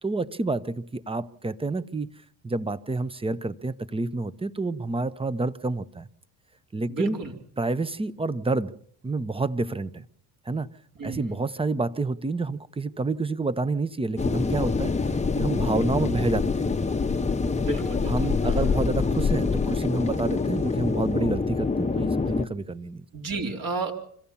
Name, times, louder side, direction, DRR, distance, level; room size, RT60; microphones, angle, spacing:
voice 1, 0.0-2.1 2.4-6.1 6.7-7.2 7.6-8.7 9.0-10.0 10.5-10.7 11.0-14.9 15.3-16.7 18.1-23.0, right 3 dB, 15° right, 16 dB, 0.9 m, -28 dB
voice 2, 6.9-7.3 11.0-11.4 17.6-18.3 23.1-23.9, right 3 dB, 50° right, 2 dB, 4.2 m, -32 dB
sound 1, 14.2-22.5, left 4 dB, 15° left, 0.9 m, -25 dB
25.5 x 15.0 x 7.2 m, 0.64 s
supercardioid pair, 80°, 43 cm